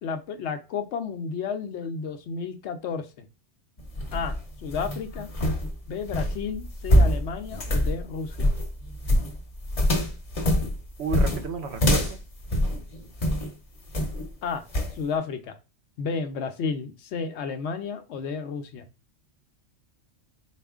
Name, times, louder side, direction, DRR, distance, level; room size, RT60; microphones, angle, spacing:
voice 1, 0.0-3.3 4.1-5.3 5.9-8.5 14.4-14.6 14.9-15.6 16.0-18.9, left 5 dB, 70° left, 8 dB, 0.8 m, -32 dB
sound 1, 3.8-13.5 13.9-14.3 14.7-15.0, equal, 35° left, 0.8 m, -25 dB
voice 2, 11.0-12.2, right 4 dB, 70° right, 7 dB, 0.9 m, -32 dB
4.2 x 2.5 x 3.5 m, 0.29 s
omnidirectional pair, 1.2 m